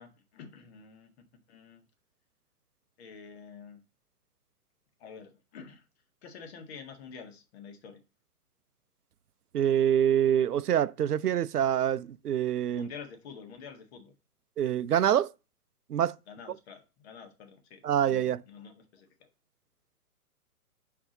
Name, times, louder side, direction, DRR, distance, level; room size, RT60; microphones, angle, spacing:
voice 1, 0.0-1.8 3.0-3.8 5.0-5.8 6.2-8.0 12.7-14.1 16.3-19.3, left 6 dB, 45° left, 1.7 m, -48 dB
voice 2, 9.5-12.9 14.6-15.3 15.9-16.2 17.8-18.4, right 10 dB, 85° right, 0.6 m, -25 dB
6.0 x 4.9 x 3.9 m
hypercardioid pair, 130°, 45 cm